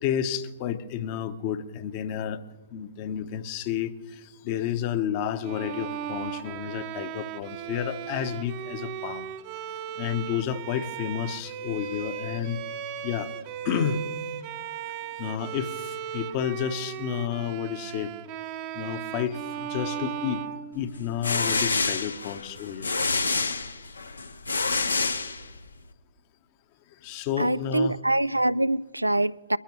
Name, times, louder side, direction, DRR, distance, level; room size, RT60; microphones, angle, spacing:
voice 1, 0.0-2.4 2.7-9.3 10.0-12.6 13.0-13.3 13.6-14.0 15.2-18.1 18.7-20.5 20.7-22.9 26.9-28.0, left 9 dB, 35° left, 1.0 m, -31 dB
Bowed string instrument, 5.4-21.3, right 9 dB, 35° right, 0.8 m, -36 dB
sound 1, 20.9-25.8, left 3 dB, 75° left, 0.9 m, -28 dB
voice 2, 27.4-29.6, right 1 dB, 85° right, 0.3 m, -24 dB
22.5 x 14.5 x 3.1 m
figure-of-eight pair, 120°, 0 cm